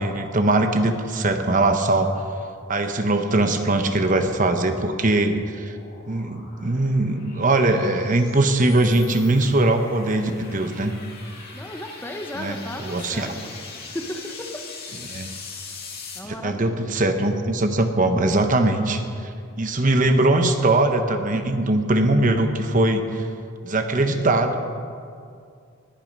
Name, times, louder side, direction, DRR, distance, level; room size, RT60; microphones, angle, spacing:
voice 1, 0.0-2.1 2.7-5.8 6.1-10.9 12.4-13.3 15.1-15.3 16.2-19.3 19.6-23.3 23.6-24.8, right 2 dB, 40° right, 6 dB, 1.0 m, -21 dB
sound 1, 5.0-16.2, left 4 dB, 45° left, 2.2 m, -42 dB
voice 2, 11.5-13.5 13.9-14.6 16.1-17.0, left 1 dB, 10° left, 4 dB, 0.9 m, -35 dB
20.5 x 9.2 x 5.4 m, 2.3 s
head